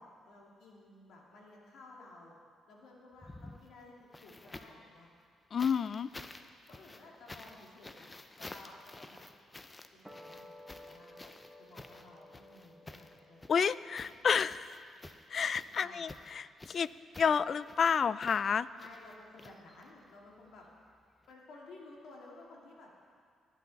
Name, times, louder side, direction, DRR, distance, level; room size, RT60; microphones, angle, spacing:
voice 1, 0.0-2.3 2.7-5.1 6.7-8.1 8.4-9.2 9.9-11.2 11.6-13.5 15.7-16.1 18.8-20.7 21.3-22.9, left 2 dB, 70° left, -2 dB, 2.3 m, -54 dB
sound 1, 3.1-4.9 5.6-20.1 21.2-21.3, left 2 dB, 20° left, 0.6 m, -51 dB
voice 2, 5.5-6.1 13.5-14.8 15.3-16.9 17.2-18.7, left 6 dB, 50° left, 17 dB, 0.3 m, -30 dB
sound 2, 10.1-16.6, left 1 dB, 5° right, 1.2 m, -57 dB
18.5 x 8.4 x 4.1 m, 2.2 s
cardioid pair, 90°, 0 cm